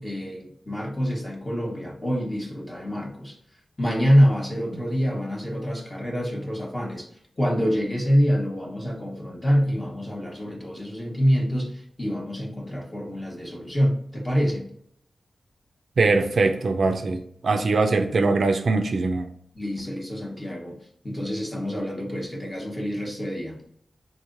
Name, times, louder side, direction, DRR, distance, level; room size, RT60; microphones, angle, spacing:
voice 1, 0.0-3.4 3.8-7.1 7.4-14.6 19.5-20.8 21.0-23.6, equal, 15° left, -1 dB, 0.9 m, -26 dB
voice 2, 16.0-19.3, right 3 dB, 60° right, 6 dB, 0.4 m, -22 dB
3.8 x 3.1 x 2.5 m, 0.68 s
wide cardioid pair, 150°, 0 cm